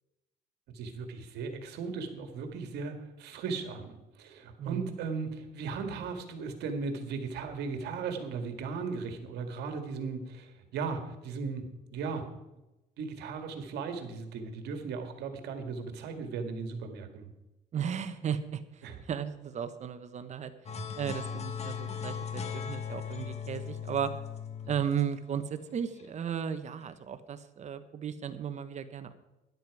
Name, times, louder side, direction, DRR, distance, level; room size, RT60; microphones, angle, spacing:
voice 1, 0.7-12.3 13.0-17.3 18.8-19.0, right 5 dB, 80° right, 6 dB, 1.9 m, -37 dB
voice 2, 4.6-4.9 17.7-20.5 20.9-24.1 24.7-29.1, right 8 dB, 45° right, 10 dB, 1.1 m, -35 dB
sound 1, 20.7-26.0, left 7 dB, 40° left, 1.7 m, -38 dB
13.0 x 11.0 x 4.8 m, 0.99 s
cardioid pair, 110°, 17 cm